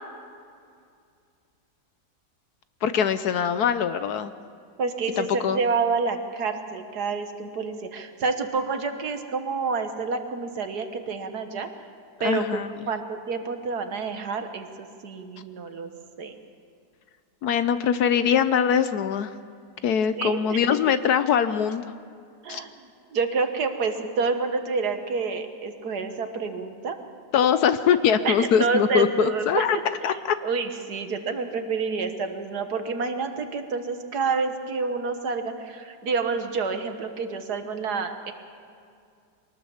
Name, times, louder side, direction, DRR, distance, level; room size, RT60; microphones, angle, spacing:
voice 1, 2.8-4.3 5.2-5.6 12.2-12.9 17.4-19.3 19.8-21.8 22.5-22.6 27.3-29.8 30.0-30.4, left 8 dB, 65° left, 12 dB, 1.1 m, -22 dB
voice 2, 4.8-11.7 12.2-15.9 16.2-16.3 20.2-20.6 22.4-22.7 23.1-27.0 28.3-29.6 30.4-38.3, right 4 dB, 60° right, 7 dB, 1.8 m, -28 dB
23.5 x 18.5 x 7.2 m, 2.3 s
omnidirectional pair, 1.9 m